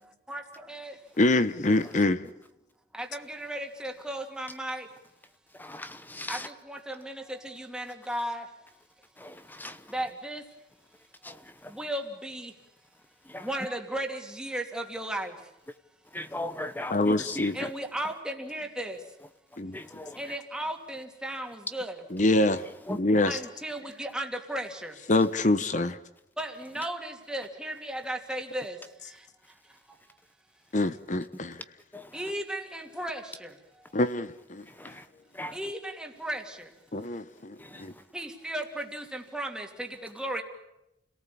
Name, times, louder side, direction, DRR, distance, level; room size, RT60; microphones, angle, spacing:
voice 1, 0.3-1.0 2.9-4.9 6.3-8.5 9.9-10.4 11.7-12.5 13.4-15.3 17.5-19.0 20.2-22.0 23.2-24.9 26.4-28.8 32.1-33.5 35.5-36.7 38.1-40.4, right 1 dB, 5° right, 2.8 m, -35 dB
voice 2, 1.2-2.3 16.9-17.7 19.6-19.8 22.1-22.6 22.9-23.4 25.1-26.0 30.7-31.6 33.9-34.6 36.9-37.9, left 2 dB, 45° left, 1.0 m, -25 dB
voice 3, 5.6-6.4 9.2-9.3 9.6-9.7 11.3-11.4 13.3-13.4 16.1-17.5 19.7-20.2 22.9-23.0 31.9-32.0 35.4-35.5, left 1 dB, 10° left, 1.0 m, -36 dB
30.0 x 18.5 x 8.5 m
head